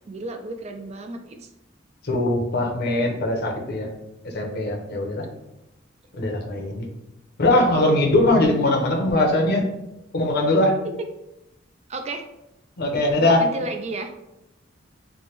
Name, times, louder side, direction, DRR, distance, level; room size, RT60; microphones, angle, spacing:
voice 1, 0.1-1.5 10.8-11.1 11.9-12.3 13.4-14.1, right 2 dB, 35° right, 5 dB, 0.3 m, -32 dB
voice 2, 2.0-3.9 4.2-5.3 6.2-6.9 7.4-9.7 10.1-10.8 12.8-13.4, left 1 dB, 55° left, 1 dB, 0.7 m, -21 dB
3.2 x 2.1 x 4.3 m, 0.89 s
head